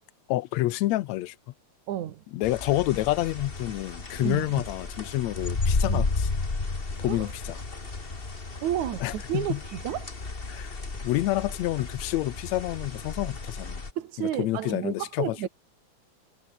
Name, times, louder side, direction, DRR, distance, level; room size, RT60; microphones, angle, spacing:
voice 1, 0.3-1.4 2.3-6.3 7.0-7.6 9.0-9.6 10.5-10.8 11.0-13.8 14.2-15.5, left 16 dB, 75° left, 2.0 m, -28 dB
voice 2, 1.9-2.2 4.2-4.5 5.9-6.0 7.1-7.2 8.6-10.1 14.0-15.5, right 11 dB, 80° right, 2.8 m, -31 dB
sound 1, 2.4-13.9, left 3 dB, 20° left, 1.9 m, -33 dB
omnidirectional pair, 3.4 m